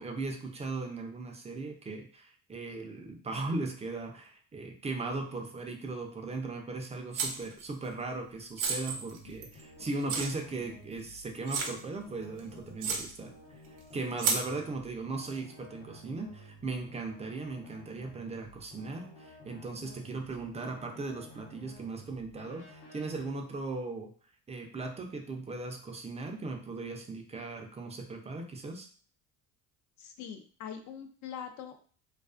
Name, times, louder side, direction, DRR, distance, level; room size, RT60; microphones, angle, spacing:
voice 1, 0.0-13.3 13.9-24.1 24.5-28.9, right 3 dB, 20° right, 3 dB, 0.5 m, -38 dB
sound 1, 7.1-7.6 8.6-9.6 10.1-10.3 10.9-11.0 11.5-11.8 12.4-12.5 12.8-13.1 14.2-14.4, right 5 dB, 75° right, 0.7 m, -31 dB
sound 2, 8.9-23.3, left 1 dB, 75° left, 1.0 m, -53 dB
voice 2, 30.0-31.8, left 8 dB, 55° left, 6 dB, 0.5 m, -43 dB
2.4 x 2.3 x 2.4 m, 0.42 s
supercardioid pair, 85°, 35 cm